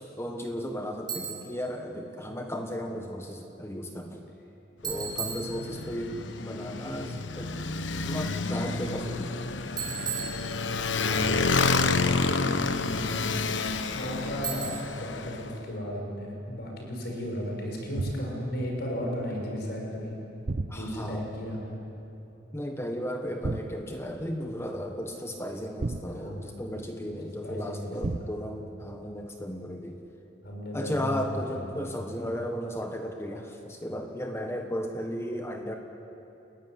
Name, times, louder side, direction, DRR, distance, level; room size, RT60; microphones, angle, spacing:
voice 1, 0.0-4.2 4.8-7.5 8.1-9.4 20.7-21.2 22.5-30.0 30.7-35.8, equal, 15° left, 3 dB, 1.4 m, -35 dB
Bicycle, 1.1-1.6 4.8-6.1 9.8-11.0 14.4-15.1, right 7 dB, 25° right, 4.9 m, -36 dB
Motorcycle, 4.8-15.5, left 3 dB, 80° left, 1.1 m, -29 dB
voice 2, 5.6-6.2 13.9-20.2 20.7-21.8 26.1-26.6 27.4-28.5 30.4-31.8, equal, 60° left, 0 dB, 6.1 m, -35 dB
sound 1, 18.0-18.5 20.5-21.2 23.4-24.0 25.8-26.6 28.0-28.6, right 2 dB, 40° right, 0.6 m, -34 dB
30.0 x 15.5 x 9.9 m, 2.9 s
head